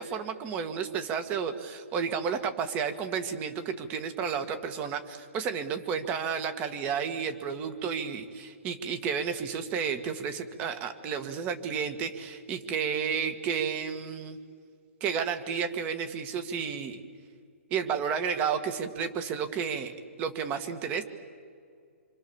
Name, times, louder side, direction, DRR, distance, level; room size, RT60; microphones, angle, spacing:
voice 1, 0.0-14.4 15.0-17.0 17.7-21.0, right 6 dB, 20° right, 9 dB, 1.8 m, -32 dB
27.0 x 27.0 x 7.2 m, 2.3 s
hypercardioid pair, 165°, 7 cm